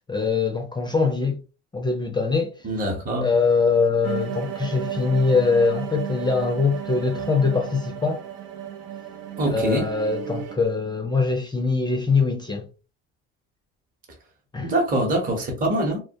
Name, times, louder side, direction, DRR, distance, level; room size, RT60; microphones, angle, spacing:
voice 1, 0.1-1.4 1.7-2.5 3.2-8.2 9.4-12.7 14.5-14.7, left 4 dB, 15° left, 0.4 m, -22 dB
voice 2, 2.6-3.3 9.4-9.9 14.6-16.0, right 1 dB, 25° right, 0.8 m, -24 dB
sound 1, 4.0-10.6, right 10 dB, 90° right, 0.6 m, -33 dB
2.2 x 2.0 x 2.7 m
supercardioid pair, 95°, 31 cm